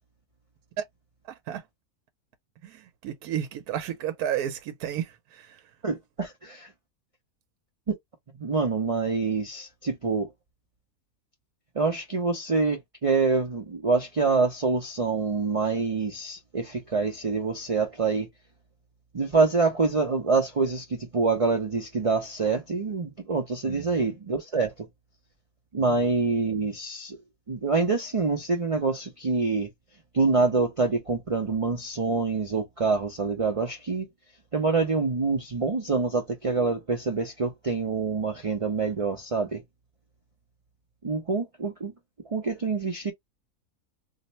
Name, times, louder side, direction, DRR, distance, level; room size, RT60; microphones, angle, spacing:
voice 1, 1.2-1.7 2.6-5.8 23.6-24.0 25.8-26.0, right 10 dB, 85° right, 1.1 m, -33 dB
voice 2, 5.8-6.7 8.4-10.3 11.7-18.3 19.1-24.9 25.7-27.2 27.5-29.7 30.1-34.1 34.5-39.6 41.0-41.9 42.3-43.1, right 4 dB, 50° right, 0.4 m, -26 dB
2.8 x 2.1 x 4.0 m
omnidirectional pair, 1.6 m